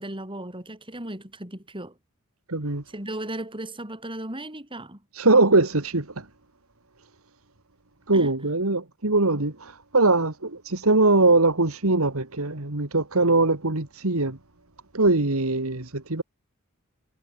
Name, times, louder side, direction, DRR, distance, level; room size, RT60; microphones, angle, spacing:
voice 1, 0.0-2.0 2.9-5.0 8.1-8.4, right 1 dB, 25° right, 6.7 m, -36 dB
voice 2, 2.5-2.8 5.2-6.1 8.1-9.5 9.9-14.4 14.9-16.2, right 2 dB, 80° right, 2.4 m, -21 dB
head